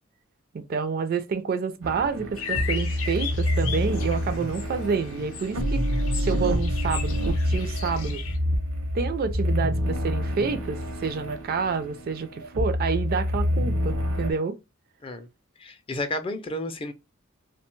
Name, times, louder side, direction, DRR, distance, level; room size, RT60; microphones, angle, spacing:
voice 1, 0.5-5.8 6.1-8.2 8.9-14.6, right 5 dB, 45° right, 0.4 m, -28 dB
sound 1, 1.8-14.3, equal, 75° right, 0.7 m, -27 dB
sound 2, 2.4-8.4, left 7 dB, 70° left, 0.6 m, -37 dB
voice 2, 15.6-16.9, left 1 dB, 25° left, 0.4 m, -32 dB
2.6 x 2.2 x 3.0 m
head